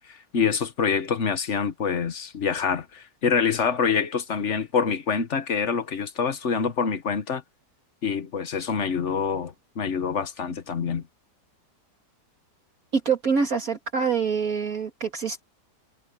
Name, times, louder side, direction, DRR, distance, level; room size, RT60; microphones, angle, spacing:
voice 1, 0.1-7.4 8.0-11.0, left 6 dB, 45° left, 1.5 m, -26 dB
voice 2, 12.9-15.4, right 5 dB, 55° right, 2.7 m, -25 dB
omnidirectional pair, 1.9 m